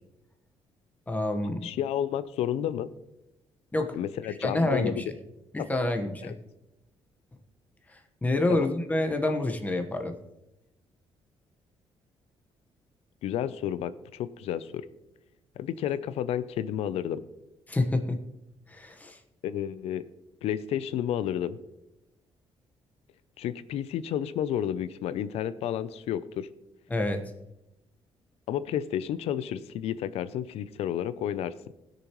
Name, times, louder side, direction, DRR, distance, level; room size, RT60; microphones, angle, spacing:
voice 1, 1.1-1.7 3.7-4.0 4.3-5.0 5.5-6.4 7.9-10.2 17.7-18.2 18.7-19.2 26.9-27.3, left 2 dB, 15° left, 5 dB, 1.2 m, -28 dB
voice 2, 1.6-2.9 3.9-4.9 5.6-5.7 6.2-6.3 8.5-8.7 13.2-14.9 15.6-17.2 19.4-20.0 20.4-21.6 23.4-26.5 28.5-31.5, left 10 dB, 85° left, 15 dB, 0.6 m, -31 dB
20.0 x 6.7 x 3.1 m, 0.95 s
cardioid pair, 115°, 10 cm